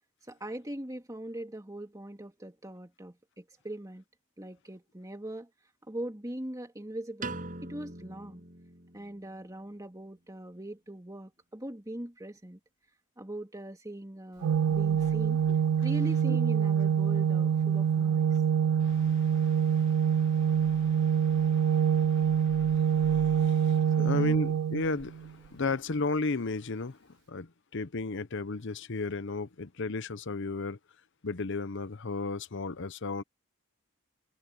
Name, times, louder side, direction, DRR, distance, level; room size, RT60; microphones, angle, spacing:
voice 1, 0.3-4.0 4.4-5.5 5.9-8.4 8.9-12.6 13.2-15.4 15.8-18.4 24.0-24.3, right 1 dB, 15° right, 2.4 m, -41 dB
Piano, 7.2-9.5, right 2 dB, 35° right, 6.6 m, -42 dB
Organ, 14.4-25.3, right 8 dB, 90° right, 0.3 m, -26 dB
voice 2, 18.7-30.8 31.2-33.2, left 3 dB, 55° left, 0.8 m, -35 dB
head